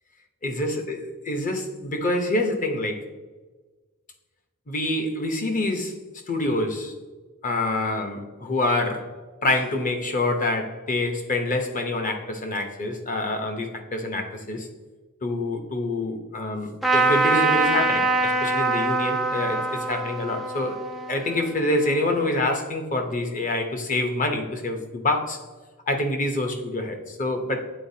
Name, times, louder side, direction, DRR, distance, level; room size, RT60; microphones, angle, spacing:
voice 1, 0.4-3.0 4.7-5.9 6.3-6.9 7.4-9.1 9.4-14.7 15.2-20.8 21.1-25.4 25.9-27.7, left 2 dB, 35° left, 4 dB, 0.7 m, -26 dB
Trumpet, 16.8-22.3, right 3 dB, ahead, 0.4 m, -24 dB
8.9 x 4.0 x 2.7 m, 1.3 s
head